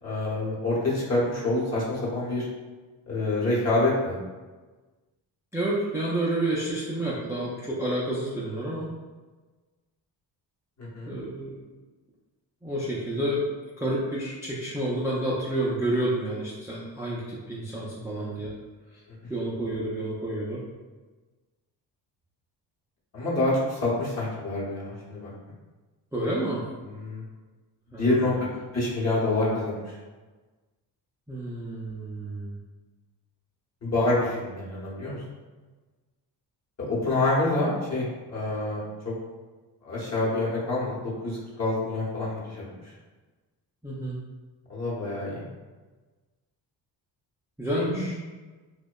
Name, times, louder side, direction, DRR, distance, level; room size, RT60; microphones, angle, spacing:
voice 1, 0.0-2.5 3.1-4.2 10.8-11.1 18.2-18.3 23.1-25.3 26.8-27.2 28.0-28.3 28.7-30.0 33.8-35.2 36.9-39.1 39.8-42.6 44.7-45.4 47.8-48.0, left 2 dB, 40° left, -7 dB, 0.9 m, -27 dB
voice 2, 5.5-8.9 11.1-11.5 12.6-13.4 13.8-18.5 19.3-20.6 26.1-26.6 27.9-28.4 31.3-32.6 43.8-44.2 47.6-48.2, right 1 dB, 10° right, -7 dB, 0.3 m, -29 dB
2.7 x 2.1 x 2.2 m, 1.3 s
cardioid pair, 100°, 40 cm